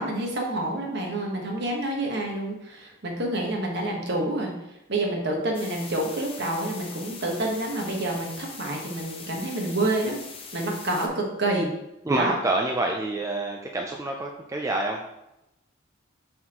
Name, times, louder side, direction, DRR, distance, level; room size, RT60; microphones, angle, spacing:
voice 1, 0.0-4.5 4.9-10.2 10.5-11.7 12.1-12.3, right 1 dB, 55° right, 0 dB, 1.3 m, -28 dB
sound 1, 5.5-11.1, left 5 dB, 30° left, 0.7 m, -42 dB
voice 2, 12.0-15.2, right 2 dB, 15° right, 1 dB, 0.4 m, -27 dB
7.6 x 4.2 x 3.0 m, 0.89 s
head